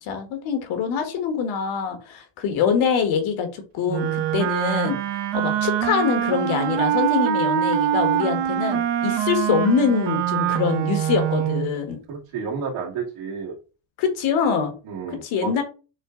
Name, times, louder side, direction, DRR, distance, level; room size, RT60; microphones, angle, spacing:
voice 1, 0.0-5.0 5.3-12.0 14.0-14.7 15.1-15.6, left 6 dB, 75° left, 6 dB, 1.5 m, -24 dB
Wind instrument woodwind instrument, 3.9-11.7, right 10 dB, 60° right, 0.8 m, -24 dB
voice 2, 12.1-13.6 14.8-15.6, right 5 dB, 80° right, -7 dB, 2.1 m, -31 dB
6.3 x 2.3 x 3.7 m, 0.33 s
cardioid pair, 115°, 49 cm